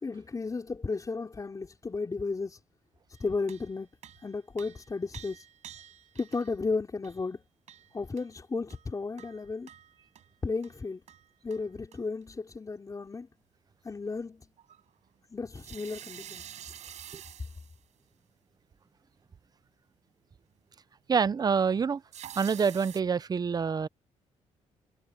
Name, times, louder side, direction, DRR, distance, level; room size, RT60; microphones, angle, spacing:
voice 1, 0.0-2.6 3.2-3.9 4.2-5.4 6.2-7.4 7.9-9.7 10.4-11.0 11.4-13.3 13.8-14.5 15.3-16.4, left 4 dB, 30° left, 4.9 m, -34 dB
sound 1, 3.1-6.5 7.0-7.2 7.7-8.3 8.7-10.3 10.6-10.8 11.1-11.7 11.9-12.0 14.6-14.8 15.6-17.8 22.1-23.0, right 10 dB, 70° right, 5.3 m, -48 dB
voice 2, 21.1-22.0 22.4-23.9, right 6 dB, 30° right, 0.7 m, -26 dB
cardioid pair, 95°, 12 cm